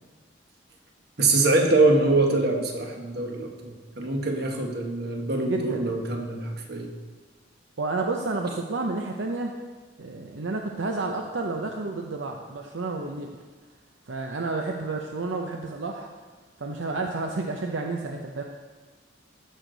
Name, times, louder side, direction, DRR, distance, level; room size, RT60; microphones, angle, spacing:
voice 1, 1.2-6.9, right 2 dB, 55° right, 2 dB, 1.4 m, -24 dB
voice 2, 5.4-6.0 7.8-9.5 10.0-13.3 14.1-16.1 16.6-18.4, right 3 dB, 75° right, 2 dB, 0.7 m, -30 dB
14.0 x 6.5 x 4.0 m, 1.4 s
head